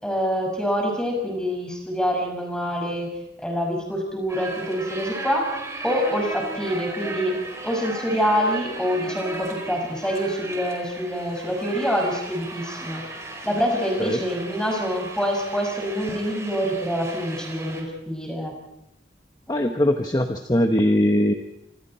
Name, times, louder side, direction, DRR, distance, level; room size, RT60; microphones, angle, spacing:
voice 1, 0.0-5.5 5.8-13.0 13.4-18.5 19.5-19.6, equal, 5° left, 1 dB, 6.0 m, -26 dB
sound 1, 4.3-17.8, right 2 dB, 15° right, 4.6 m, -36 dB
voice 2, 19.5-21.3, left 1 dB, 20° left, 5 dB, 1.1 m, -21 dB
26.5 x 25.5 x 4.4 m, 0.87 s
head